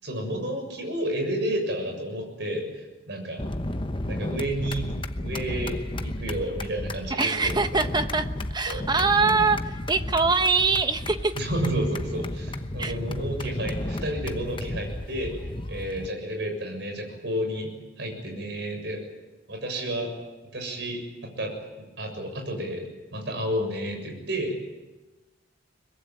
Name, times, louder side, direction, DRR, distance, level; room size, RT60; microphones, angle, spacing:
voice 1, 0.0-3.4 4.1-4.8 5.2-5.8 6.0-7.8 8.7-8.9 11.3-15.3 15.7-19.0 19.5-20.1 20.5-21.5 21.8-22.8 23.1-24.5, right 1 dB, 60° right, 3 dB, 6.9 m, -31 dB
sound 1, 3.4-16.1, left 1 dB, 25° left, 0.9 m, -33 dB
voice 2, 7.2-8.3 8.5-11.3 12.8-12.9, right 4 dB, 20° right, 9 dB, 1.1 m, -23 dB
23.5 x 21.5 x 9.2 m, 1.1 s
head